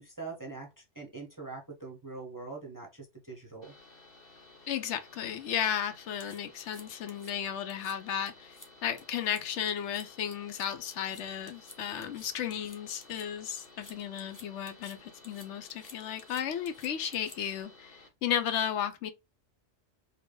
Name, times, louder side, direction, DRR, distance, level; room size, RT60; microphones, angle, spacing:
voice 1, 0.0-3.7, right 3 dB, 20° right, 0.6 m, -43 dB
sound 1, 3.6-18.1, left 2 dB, 50° left, 1.3 m, -56 dB
voice 2, 4.7-19.1, left 9 dB, 75° left, 0.9 m, -34 dB
sound 2, 6.2-7.3 7.7-7.9 8.3-8.7 9.0-9.4 9.7-10.1 10.3-13.3 13.6-15.0 15.2-17.6, left 2 dB, 25° left, 0.4 m, -53 dB
3.3 x 2.3 x 3.6 m
omnidirectional pair, 1.2 m